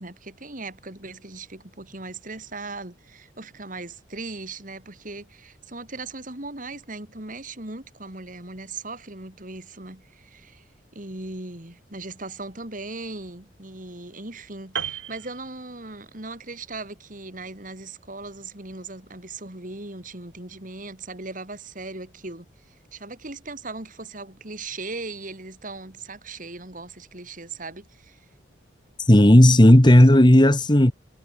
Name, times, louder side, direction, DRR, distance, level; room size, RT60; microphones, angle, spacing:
voice 1, 0.0-10.6 10.9-28.2, right 3 dB, 45° right, 3.4 m, -38 dB
Piano, 14.8-16.2 16.5-16.7, right 8 dB, 85° right, 7.5 m, -34 dB
voice 2, 29.1-30.9, left 1 dB, 25° left, 1.5 m, -13 dB
head